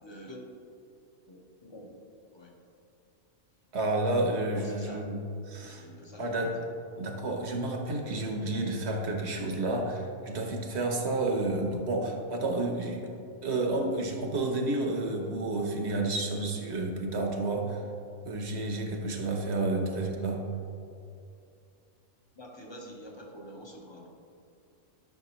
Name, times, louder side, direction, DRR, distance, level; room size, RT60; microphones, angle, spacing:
voice 1, 0.0-0.4 1.3-2.0 2.3-2.5 4.5-5.1 5.6-6.6 19.9-20.0 22.3-24.1, equal, 20° left, 0 dB, 1.0 m, -47 dB
voice 2, 3.7-5.2 5.5-5.9 6.2-6.5 7.0-13.1 13.4-17.8 18.2-20.4, right 2 dB, 60° right, 2 dB, 1.2 m, -30 dB
11.5 x 6.0 x 3.0 m, 2.6 s
omnidirectional pair, 1.4 m